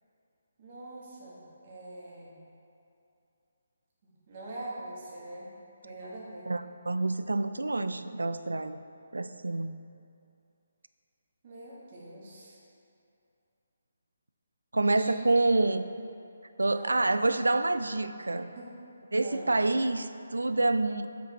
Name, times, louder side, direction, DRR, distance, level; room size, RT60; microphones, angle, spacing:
voice 1, 0.6-2.4 4.0-5.5 5.8-6.5 11.4-12.6 15.0-15.2 16.7-17.0 18.6-18.7 19.2-19.5, right 1 dB, 45° right, -6 dB, 1.8 m, -43 dB
voice 2, 6.5-8.8 9.1-9.7 14.7-15.8 16.6-18.5 19.1-21.1, right 2 dB, 85° right, 12 dB, 0.3 m, -27 dB
7.9 x 5.3 x 4.4 m, 2.6 s
figure-of-eight pair, 150°, 0 cm